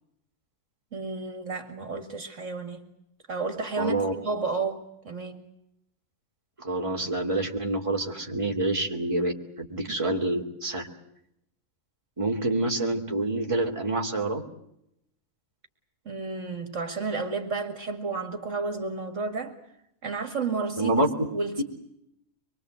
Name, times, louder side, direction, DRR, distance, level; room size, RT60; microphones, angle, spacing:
voice 1, 0.9-2.9 3.3-5.5 9.9-10.1 16.1-19.6 20.0-21.6, right 4 dB, 60° right, 7 dB, 2.5 m, -32 dB
voice 2, 3.8-4.1 6.6-9.3 9.7-10.9 12.2-14.4 20.8-21.3 21.6-21.7, right 2 dB, 20° right, 2 dB, 2.9 m, -27 dB
25.0 x 23.0 x 8.0 m, 0.80 s
omnidirectional pair, 1.4 m